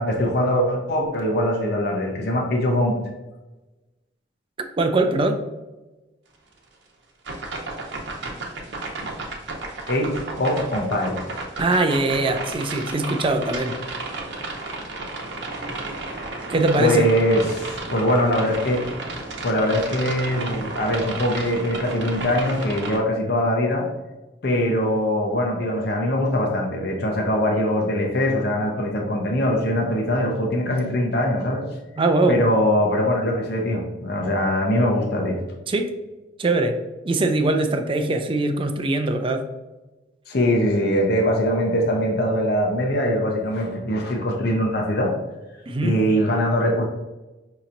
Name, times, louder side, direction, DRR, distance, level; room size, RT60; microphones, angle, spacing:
voice 1, 0.0-3.0 9.9-11.2 16.8-18.8 19.4-23.9 24.4-31.6 32.3-35.4 40.3-45.1 45.8-46.8, equal, 60° left, 0 dB, 0.7 m, -22 dB
voice 2, 4.8-5.4 11.6-13.8 16.5-17.1 32.0-32.4 35.7-35.9 36.4-36.8 37.0-39.5 45.7-46.0, right 2 dB, 30° right, 6 dB, 0.4 m, -21 dB
sound 1, 7.3-23.0, right 2 dB, 70° right, 0.9 m, -33 dB
5.5 x 2.9 x 2.5 m, 1.1 s
head